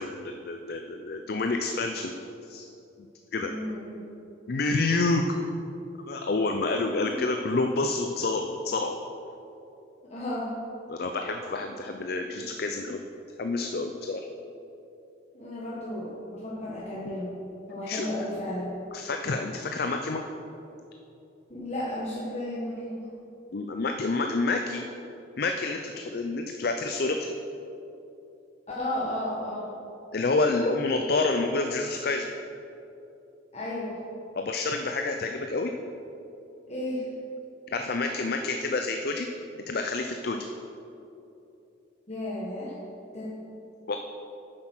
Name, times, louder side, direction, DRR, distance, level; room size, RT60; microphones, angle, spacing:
voice 1, 0.0-2.1 2.5-2.7 3.3-3.6 4.5-5.5 6.1-9.0 10.9-13.1 13.4-14.2 17.9-18.1 18.9-20.2 23.5-24.9 25.4-27.2 30.1-32.3 34.3-35.7 37.7-39.3 39.7-40.5 43.9-44.0, left 3 dB, 50° left, 5 dB, 0.5 m, -28 dB
voice 2, 3.4-4.0 7.0-7.2 10.1-10.5 15.3-17.3 17.7-18.8 21.5-23.1 28.7-29.7 33.5-34.0 36.7-37.1 42.1-42.8 43.1-43.3, left 1 dB, 35° left, -8 dB, 1.3 m, -33 dB
9.0 x 7.5 x 5.9 m, 2.9 s
head